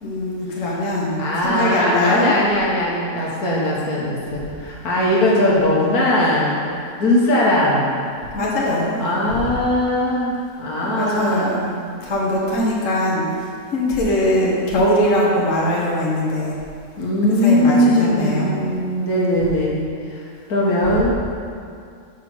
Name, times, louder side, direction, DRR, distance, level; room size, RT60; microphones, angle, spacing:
voice 1, 0.0-2.3 8.3-9.4 11.0-11.6 12.0-13.3 13.7-16.5 17.4-18.5, left 1 dB, 55° left, -4 dB, 1.6 m, -21 dB
voice 2, 1.2-6.6 7.0-7.9 9.0-11.9 17.0-21.1, left 1 dB, 80° left, -5 dB, 1.7 m, -20 dB
6.8 x 5.1 x 6.1 m, 2.3 s
omnidirectional pair, 1.6 m